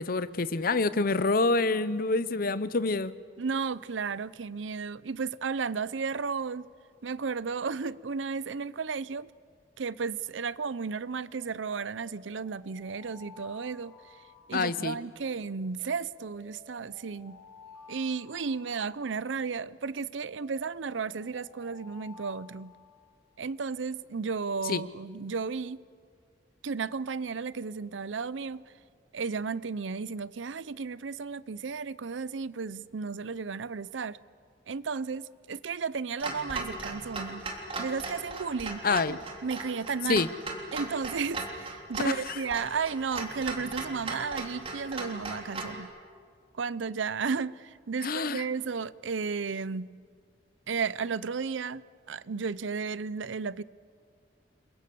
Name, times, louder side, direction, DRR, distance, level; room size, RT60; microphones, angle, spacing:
voice 1, 0.0-3.1 14.5-15.0 24.7-24.8 38.8-39.2 40.1-40.3 42.0-42.4 48.0-48.4, left 3 dB, 50° left, 0.8 m, -27 dB
voice 2, 3.4-6.7 7.0-9.3 9.8-14.2 14.5-17.4 17.9-22.7 23.4-25.8 26.6-28.7 29.1-34.2 34.7-37.5 37.8-40.2 40.7-45.9 46.5-49.9 50.7-51.8 52.1-53.6, right 5 dB, 90° right, 0.6 m, -34 dB
Alarm, 11.4-15.1 15.8-19.5 20.2-23.4, left 4 dB, 50° right, 7.7 m, -54 dB
Clock, 36.2-45.8, right 3 dB, 30° right, 3.3 m, -38 dB
29.5 x 22.5 x 7.0 m
head